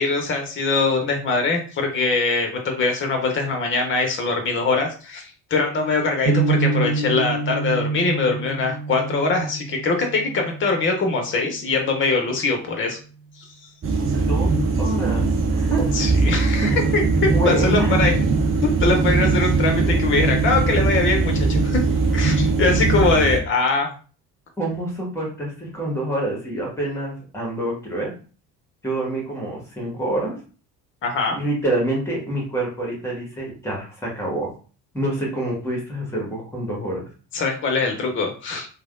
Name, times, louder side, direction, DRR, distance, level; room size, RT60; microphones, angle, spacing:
voice 1, 0.0-13.0 13.4-13.5 15.9-18.1 18.8-21.8 22.1-23.9 31.0-31.4 37.3-38.7, left 3 dB, 25° left, 3 dB, 0.8 m, -22 dB
sound 1, 6.3-12.3, right 4 dB, 85° right, 0.9 m, -27 dB
sound 2, 13.8-23.4, right 3 dB, 25° right, 0.6 m, -20 dB
voice 2, 14.8-15.3 15.5-15.9 16.6-16.8 17.3-18.0 24.6-28.1 28.8-30.4 31.4-34.5 34.9-37.0, right 1 dB, 5° left, -2 dB, 1.5 m, -26 dB
3.2 x 2.2 x 2.5 m, 0.38 s
figure-of-eight pair, 55°, 49 cm